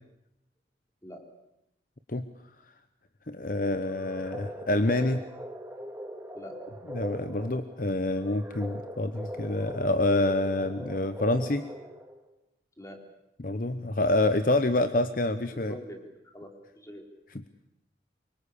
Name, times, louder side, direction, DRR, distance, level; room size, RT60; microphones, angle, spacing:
voice 1, 3.3-5.2 6.9-11.6 13.4-15.7, left 2 dB, 50° left, 11 dB, 1.0 m, -27 dB
sound 1, 3.8-12.3, equal, 10° right, 2.3 m, -41 dB
voice 2, 15.5-17.1, equal, 15° left, 4 dB, 3.6 m, -45 dB
25.0 x 23.0 x 8.5 m, 0.85 s
head